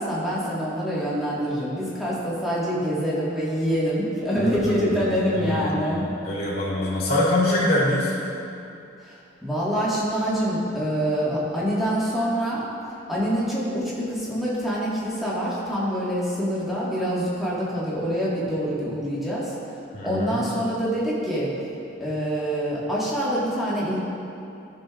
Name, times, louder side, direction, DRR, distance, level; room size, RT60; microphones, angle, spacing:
voice 1, 0.0-6.1 9.0-12.6 13.1-19.5 20.0-21.5 22.0-24.0, equal, ahead, -9 dB, 1.7 m, -25 dB
voice 2, 4.4-5.0 5.3-8.2 19.9-20.5, left 1 dB, 50° left, -7 dB, 1.7 m, -24 dB
14.5 x 6.3 x 2.5 m, 2.7 s
head